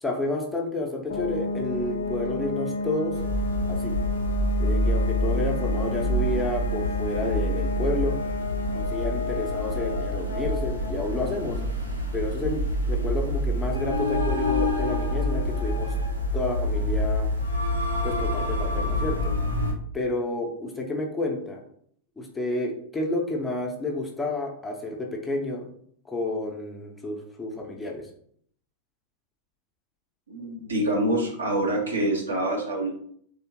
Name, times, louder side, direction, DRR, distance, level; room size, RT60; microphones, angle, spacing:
voice 1, 0.0-3.2 3.7-4.0 4.6-8.2 8.7-11.6 12.1-15.9 16.3-17.3 18.0-19.3 19.9-21.6 22.2-25.7 26.1-28.1, left 2 dB, 10° left, 0 dB, 0.8 m, -30 dB
sound 1, 1.1-15.7, left 2 dB, 60° left, 0.6 m, -33 dB
sound 2, 3.1-19.7, left 1 dB, 90° right, 0.7 m, -27 dB
voice 2, 30.3-32.9, right 1 dB, 70° right, -2 dB, 1.3 m, -26 dB
3.5 x 3.4 x 2.9 m, 0.64 s
figure-of-eight pair, 90°, 0 cm